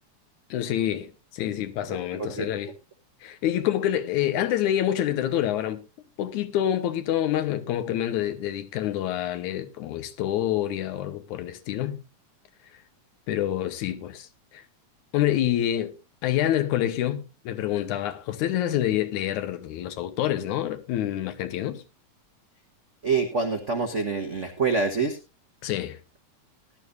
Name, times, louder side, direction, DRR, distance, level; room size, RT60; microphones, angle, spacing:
voice 1, 0.5-2.7 3.2-5.8 6.2-12.0 13.3-14.6 15.1-15.9 16.2-21.8 25.6-26.0, left 12 dB, 80° left, 2.4 m, -27 dB
voice 2, 1.9-2.6 23.0-25.2, right 4 dB, 90° right, 0.6 m, -26 dB
17.5 x 11.5 x 2.5 m
omnidirectional pair, 3.5 m